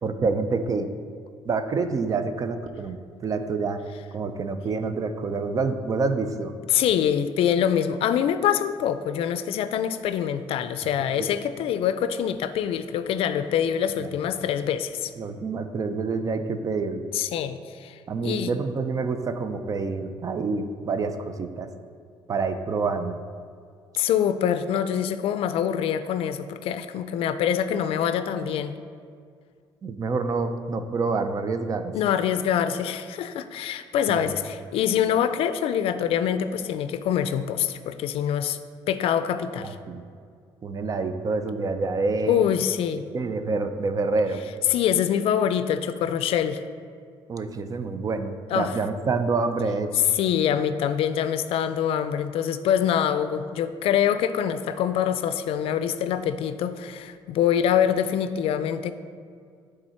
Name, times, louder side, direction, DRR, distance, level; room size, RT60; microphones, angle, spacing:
voice 1, 0.0-0.9 1.5-3.0 3.2-3.8 4.1-6.5 11.2-11.3 14.0-14.1 15.2-17.1 18.1-21.7 22.3-23.2 29.8-31.9 34.1-34.3 39.6-40.0 40.6-42.4 43.1-44.4 47.3-50.0, right 4 dB, 35° right, 9 dB, 0.5 m, -27 dB
voice 2, 6.7-15.1 17.1-18.5 24.0-28.7 31.9-38.6 38.9-39.8 42.3-43.0 44.7-46.6 48.5-48.7 50.2-58.9, left 9 dB, 75° left, 11 dB, 0.4 m, -25 dB
8.9 x 3.8 x 4.4 m, 2.2 s
cardioid pair, 125°, 10 cm